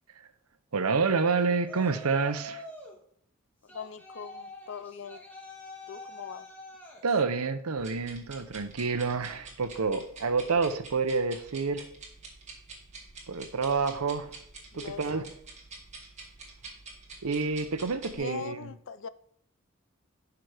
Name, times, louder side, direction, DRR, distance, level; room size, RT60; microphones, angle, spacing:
voice 1, 0.7-2.6 7.0-11.9 13.3-14.3 14.7-15.2 17.2-18.7, right 4 dB, 85° right, 0.8 m, -28 dB
Yell, 1.6-3.0 3.7-7.1, left 1 dB, 10° left, 1.7 m, -45 dB
voice 2, 3.6-5.2 5.9-6.5 14.7-15.3 18.1-19.1, left 6 dB, 60° left, 0.5 m, -41 dB
sound 1, 7.8-18.2, right 3 dB, 35° right, 2.0 m, -48 dB
11.5 x 5.8 x 3.4 m
head